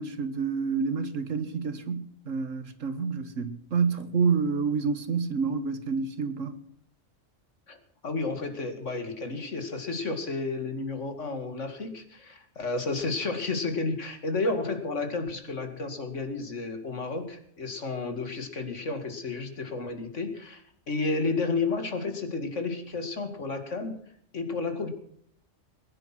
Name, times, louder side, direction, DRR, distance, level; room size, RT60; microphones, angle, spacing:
voice 1, 0.0-6.6, right 5 dB, 80° right, 1.8 m, -28 dB
voice 2, 8.0-24.0 24.3-24.9, left 3 dB, 70° left, 2.6 m, -31 dB
21.0 x 10.0 x 6.1 m
omnidirectional pair, 1.3 m